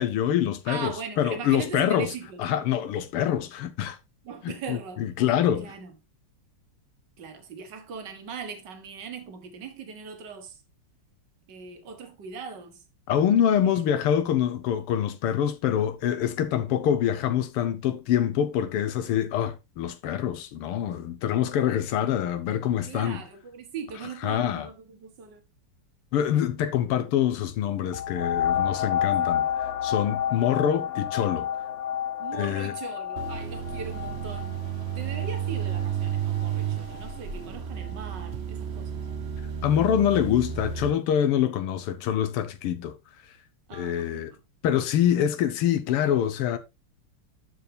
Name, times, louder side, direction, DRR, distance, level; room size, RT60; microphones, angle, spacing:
voice 1, 0.0-2.1 2.4-4.0 4.4-5.7 13.1-23.2 24.2-24.7 26.1-29.4 29.8-31.5 32.3-32.7 39.6-42.9 43.7-44.3 44.6-46.6, left 10 dB, 90° left, 1.9 m, -25 dB
voice 2, 0.7-2.4 4.2-5.0 5.6-5.9 7.2-10.6 11.5-12.8 22.8-25.4 29.2-29.4 32.2-34.6 35.0-39.1 43.7-44.4, right 6 dB, 55° right, 2.1 m, -39 dB
sound 1, 27.9-37.2 37.8-37.9, left 9 dB, 55° left, 1.1 m, -30 dB
sound 2, 33.2-40.9, right 9 dB, 80° right, 0.5 m, -32 dB
12.5 x 4.7 x 3.4 m
omnidirectional pair, 2.4 m